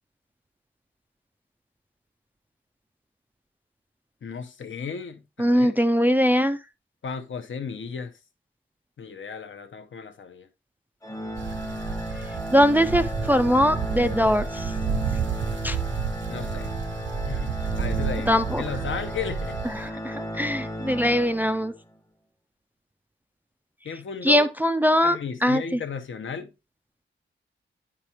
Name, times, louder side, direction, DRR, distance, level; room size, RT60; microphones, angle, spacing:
voice 1, 4.2-5.7 7.0-8.1 9.0-10.5 16.3-16.7 17.3-19.6 23.8-24.5 25.0-26.5, left 6 dB, 70° left, 0.9 m, -34 dB
voice 2, 5.4-6.6 12.5-14.7 15.6-15.8 18.3-18.6 19.6-21.7 24.2-25.8, equal, 10° right, 0.3 m, -22 dB
Organ, 11.0-21.9, equal, 15° left, 0.9 m, -34 dB
sound 1, 11.4-19.9, right 6 dB, 65° right, 0.6 m, -31 dB
10.0 x 4.9 x 2.8 m
wide cardioid pair, 160°, 21 cm